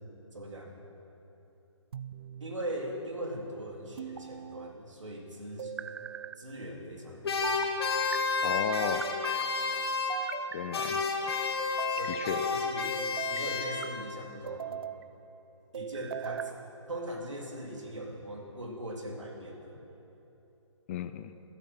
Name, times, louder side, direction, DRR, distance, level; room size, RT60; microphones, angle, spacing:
voice 1, 0.3-0.8 2.4-5.7 6.4-7.6 11.9-14.8 15.7-16.5 16.9-19.8, right 1 dB, 75° right, 0 dB, 3.5 m, -40 dB
sound 1, 1.9-2.6 4.0-4.7 5.6-6.4 7.4-8.2 8.8-9.5 10.1-10.9 11.6-12.2 13.0-13.9 14.5-15.0 15.7-16.6, right 8 dB, 50° right, 0.5 m, -40 dB
sound 2, 7.2-10.5 10.7-14.1, left 4 dB, 55° left, 1.8 m, -31 dB
voice 2, 8.4-9.1 10.5-11.4 12.1-12.4 20.9-21.3, left 10 dB, 25° left, 11 dB, 0.5 m, -34 dB
26.5 x 9.0 x 6.1 m, 3.0 s
figure-of-eight pair, 140°, 16 cm